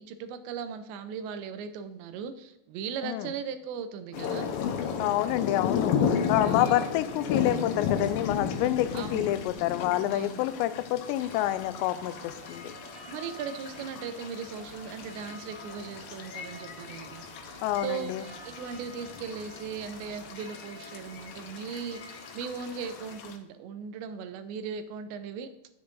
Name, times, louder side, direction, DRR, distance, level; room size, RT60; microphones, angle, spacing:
voice 1, 0.0-4.5 6.4-6.8 8.9-9.3 10.1-10.5 13.1-17.2 17.5-25.5, right 6 dB, 85° right, 9 dB, 3.0 m, -38 dB
voice 2, 3.0-3.3 5.0-12.7 17.6-18.3, left 13 dB, 90° left, 12 dB, 2.8 m, -28 dB
sound 1, 4.1-23.3, left 7 dB, 75° left, 2.2 m, -34 dB
sound 2, 11.2-23.1, left 1 dB, 25° left, 0.8 m, -48 dB
9.6 x 7.2 x 3.8 m, 0.87 s
omnidirectional pair, 4.9 m